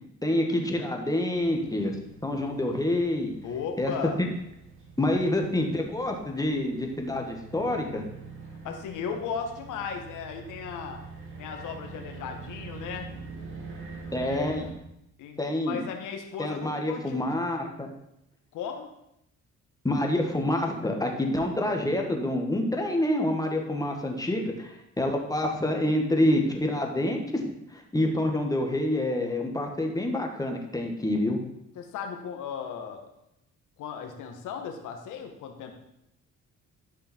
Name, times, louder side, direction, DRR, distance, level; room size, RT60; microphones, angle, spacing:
voice 1, 0.2-3.3 3.8-3.9 4.2-4.3 5.0-8.0 14.1-14.7 15.4-15.8 16.4-17.9 19.8-27.4 27.7-31.4, left 1 dB, 10° left, 2 dB, 1.8 m, -27 dB
sound 1, 1.3-14.7, right 4 dB, 40° right, 2.6 m, -44 dB
voice 2, 3.4-4.2 8.6-11.0 11.4-13.1 14.1-14.6 15.2-17.3 18.5-18.9 31.7-33.1 33.8-35.7, left 7 dB, 90° left, 4 dB, 1.4 m, -36 dB
12.0 x 5.5 x 4.5 m, 0.81 s
cardioid pair, 90°, 30 cm